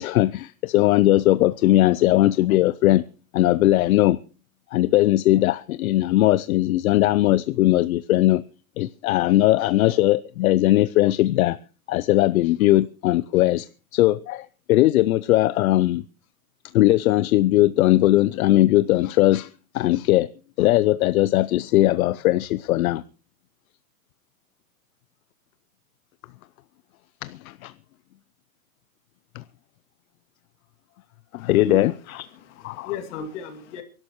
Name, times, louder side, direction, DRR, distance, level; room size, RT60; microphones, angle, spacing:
voice 1, 0.0-3.0 3.3-4.2 4.7-8.4 8.8-11.6 11.9-13.7 13.9-16.0 16.7-20.3 20.6-23.0 27.2-27.7 29.3-29.4 31.3-32.2 32.6-32.9, left 16 dB, 80° left, 0.6 m, -19 dB
voice 2, 31.4-31.8 32.3-33.8, left 4 dB, 55° left, 2.5 m, -34 dB
26.5 x 12.0 x 3.1 m
supercardioid pair, 155°, 42 cm